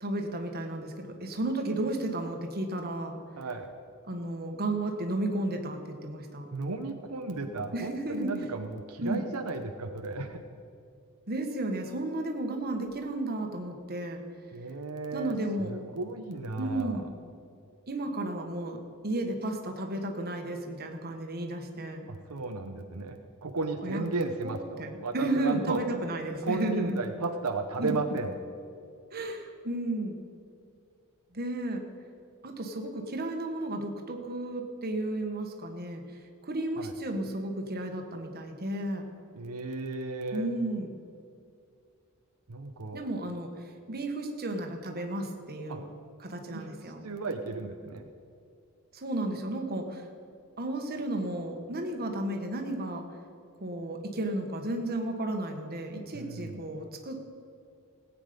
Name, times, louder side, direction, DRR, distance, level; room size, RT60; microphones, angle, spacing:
voice 1, 0.0-3.2 4.1-6.5 7.7-8.4 9.0-9.2 11.3-14.2 15.1-15.7 16.6-17.1 17.9-22.1 23.8-24.0 24.4-27.0 27.8-27.9 29.1-30.2 31.3-31.8 32.4-36.0 36.4-39.1 40.3-40.9 42.9-43.5 43.9-45.9 46.2-47.0 48.9-50.0 50.6-53.1 53.6-57.2, right 1 dB, 45° right, 3 dB, 1.4 m, -33 dB
voice 2, 3.4-3.7 6.5-10.4 14.5-17.1 22.1-26.2 26.4-28.3 36.8-36.9 39.3-40.5 42.5-43.0 45.7-45.8 46.5-48.1 56.1-56.6, right 3 dB, 90° right, 5 dB, 0.9 m, -34 dB
18.0 x 8.5 x 5.2 m, 2.4 s
head